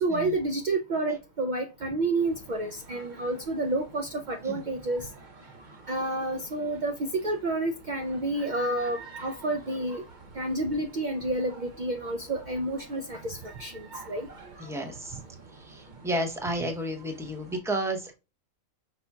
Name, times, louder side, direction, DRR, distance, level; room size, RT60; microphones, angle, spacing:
voice 1, 0.0-5.1 5.9-10.0 10.3-14.3, right 2 dB, 70° right, 0.4 m, -30 dB
sound 1, 2.2-17.6, right 3 dB, 40° right, 0.9 m, -49 dB
voice 2, 14.6-15.2 15.5-18.1, right 1 dB, 5° right, 0.6 m, -32 dB
5.5 x 4.1 x 2.3 m
omnidirectional pair, 1.4 m